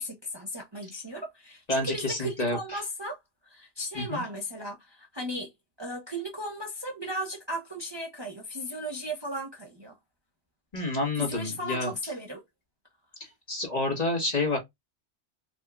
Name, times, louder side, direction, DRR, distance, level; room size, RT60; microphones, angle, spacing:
voice 1, 0.0-3.2 3.4-5.5 5.8-10.0 11.2-12.4, equal, 25° right, 0.9 m, -36 dB
voice 2, 1.7-2.8 3.9-4.2 10.7-11.9 13.2-14.6, left 2 dB, 35° left, 1.6 m, -29 dB
5.0 x 2.7 x 2.3 m
omnidirectional pair, 1.2 m